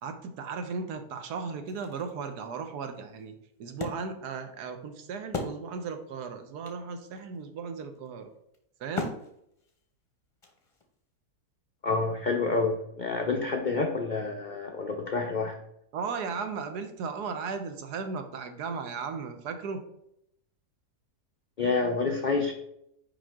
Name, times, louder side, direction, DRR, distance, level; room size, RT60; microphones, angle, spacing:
voice 1, 0.0-8.3 8.8-9.1 15.9-19.8, right 5 dB, 80° right, 7 dB, 1.4 m, -36 dB
Wood, 1.7-6.1 6.4-6.5 6.7-11.0, left 3 dB, 30° left, 0.7 m, -40 dB
voice 2, 11.8-15.6 21.6-22.5, left 4 dB, 70° left, 3 dB, 0.4 m, -28 dB
5.5 x 5.1 x 3.6 m, 0.77 s
omnidirectional pair, 1.7 m